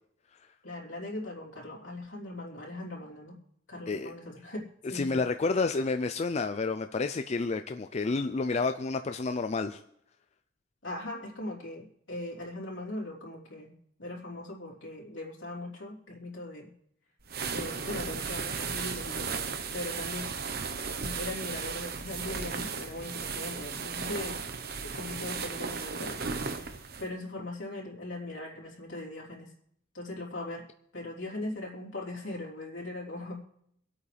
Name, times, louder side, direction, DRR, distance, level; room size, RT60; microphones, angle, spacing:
voice 1, 0.6-3.4 3.7-5.2 10.8-13.7 14.0-16.7 17.5-19.5 19.7-20.3 21.0-24.4 24.8-29.5 29.9-30.6 30.9-33.4, left 2 dB, 75° left, -4 dB, 3.5 m, -40 dB
voice 2, 4.9-9.8, left 3 dB, 35° left, 8 dB, 0.4 m, -30 dB
sound 1, 17.2-27.1, right 5 dB, 55° right, 0.9 m, -35 dB
26.0 x 8.6 x 3.4 m, 0.71 s
head